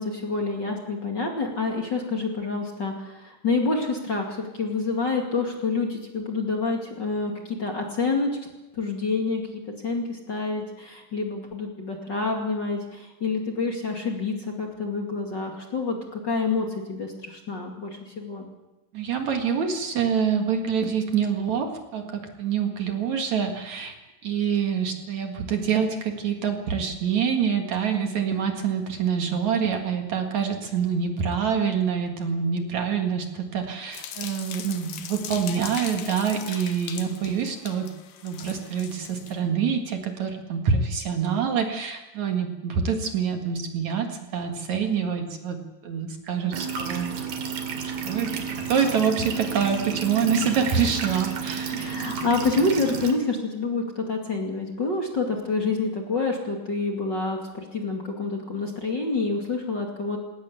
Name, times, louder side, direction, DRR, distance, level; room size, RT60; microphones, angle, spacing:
voice 1, 0.0-8.4 8.7-18.5 51.7-60.2, left 3 dB, 35° left, 1 dB, 2.6 m, -28 dB
voice 2, 18.9-24.0 24.2-37.9 38.2-47.2 48.0-48.4 48.7-51.7, right 7 dB, 55° right, 4 dB, 2.9 m, -26 dB
sound 1, 33.9-39.3, left 9 dB, 70° left, 3.1 m, -39 dB
sound 2, 46.5-53.1, right 6 dB, 90° right, 4.2 m, -31 dB
20.0 x 18.5 x 8.4 m, 1.0 s
omnidirectional pair, 4.1 m